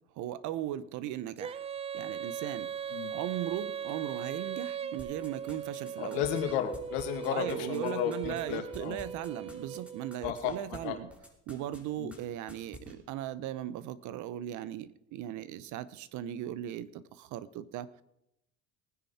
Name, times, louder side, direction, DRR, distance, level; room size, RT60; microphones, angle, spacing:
voice 1, 0.2-1.7 1.9-2.7 3.1-6.2 7.3-11.1 11.5-18.0, right 12 dB, 65° right, 17 dB, 1.0 m, -38 dB
Female singing, 1.4-10.2, right 8 dB, 20° right, 0.4 m, -39 dB
sound 1, 5.0-10.8 11.1-11.8 12.1-12.2 12.5-12.9, left 1 dB, 5° right, 3.5 m, -48 dB
voice 2, 6.0-9.0 10.2-10.5 10.8-11.0 12.0-12.1, left 10 dB, 80° left, 5 dB, 2.2 m, -33 dB
19.0 x 10.0 x 4.3 m, 0.82 s
supercardioid pair, 100°, 33 cm